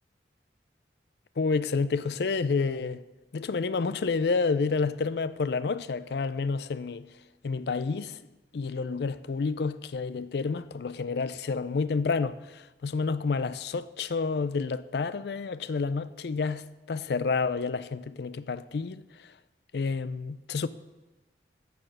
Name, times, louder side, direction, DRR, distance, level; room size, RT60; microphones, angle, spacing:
voice 1, 1.4-3.0 3.3-7.1 7.4-8.2 8.5-16.6 16.9-19.0 19.7-20.7, left 4 dB, 65° left, 0.4 m, -29 dB
13.0 x 4.8 x 6.5 m
head